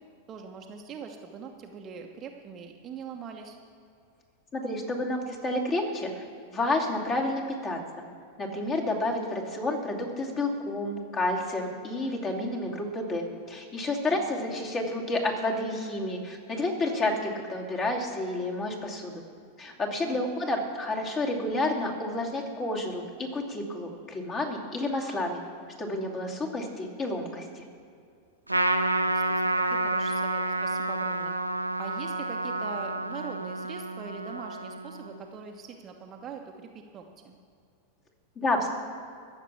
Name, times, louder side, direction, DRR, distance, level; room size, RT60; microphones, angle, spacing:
voice 1, 0.3-3.5 9.1-9.2 14.1-14.3 20.0-20.2 26.3-26.6 29.0-31.3 31.8-37.4, right 6 dB, 30° right, 2 dB, 1.1 m, -42 dB
voice 2, 4.5-7.8 8.4-19.1 19.6-25.4 25.8-27.6 38.4-38.7, left 2 dB, 25° left, 0 dB, 2.7 m, -30 dB
Trumpet, 28.5-35.2, right 2 dB, 85° right, 0.8 m, -29 dB
14.5 x 7.3 x 8.4 m, 2.4 s
figure-of-eight pair, 90°, 0 cm